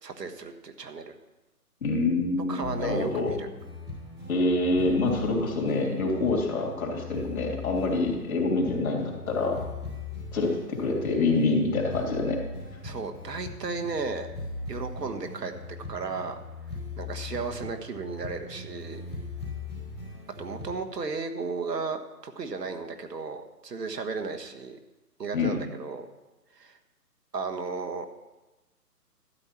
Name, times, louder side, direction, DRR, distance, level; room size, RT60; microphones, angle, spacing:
voice 1, 0.0-1.2 2.5-3.5 12.8-14.3 14.7-15.5 15.9-16.3 17.0-19.0 20.4-24.8 25.2-26.1 26.5-26.8 27.3-28.1, right 4 dB, 80° right, 6 dB, 1.4 m, -34 dB
voice 2, 1.8-3.3 4.3-9.6 10.3-12.4 25.3-25.6, left 3 dB, 60° left, 0 dB, 2.9 m, -26 dB
sound 1, 2.6-20.7, left 2 dB, 5° right, 0.7 m, -39 dB
12.5 x 8.8 x 4.4 m, 1.1 s
figure-of-eight pair, 155°, 48 cm